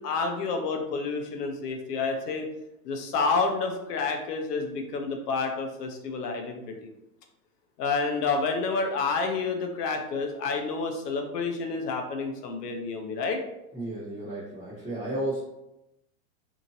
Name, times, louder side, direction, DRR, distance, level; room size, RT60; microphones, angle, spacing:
voice 1, 0.0-2.5 2.8-6.9 7.8-13.4, left 4 dB, 80° left, 4 dB, 0.8 m, -29 dB
voice 2, 13.7-15.4, right 1 dB, 15° left, -10 dB, 0.7 m, -33 dB
2.8 x 2.5 x 2.7 m, 0.88 s
supercardioid pair, 160°, 46 cm